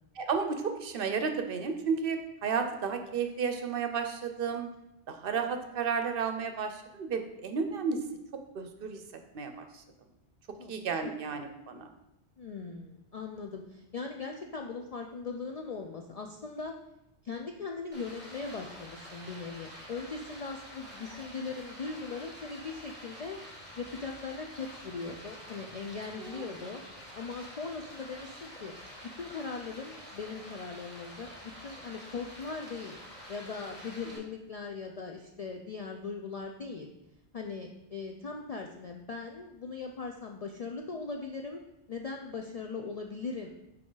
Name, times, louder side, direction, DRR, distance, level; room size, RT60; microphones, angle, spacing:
voice 1, 0.2-4.7 5.1-8.0 8.5-9.0 9.3-9.6 10.7-11.9 26.2-26.4, right 5 dB, 60° right, 7 dB, 0.7 m, -32 dB
voice 2, 12.4-16.8 17.2-23.4 23.8-26.8 27.1-28.7 29.1-33.0 33.3-36.9 37.3-41.6 41.9-43.5, left 4 dB, 60° left, 2 dB, 0.4 m, -39 dB
Stream, 17.9-34.2, equal, 10° left, 2.1 m, -48 dB
6.1 x 4.4 x 3.8 m, 0.87 s
omnidirectional pair, 1.1 m